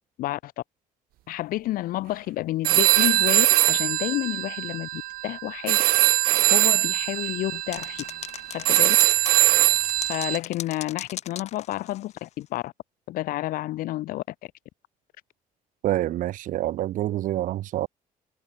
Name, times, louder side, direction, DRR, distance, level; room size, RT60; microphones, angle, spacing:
voice 1, 0.2-0.5 1.3-5.8 6.5-8.0 8.5-9.0 10.1-12.7 13.1-14.5, left 16 dB, 75° left, 4.4 m, -30 dB
sound 1, 2.6-10.4, right 17 dB, 80° right, 1.5 m, -22 dB
sound 2, 7.7-12.3, left 11 dB, 50° left, 1.5 m, -39 dB
voice 2, 15.8-17.9, right 14 dB, 65° right, 3.0 m, -27 dB
cardioid pair, 165°, 15 cm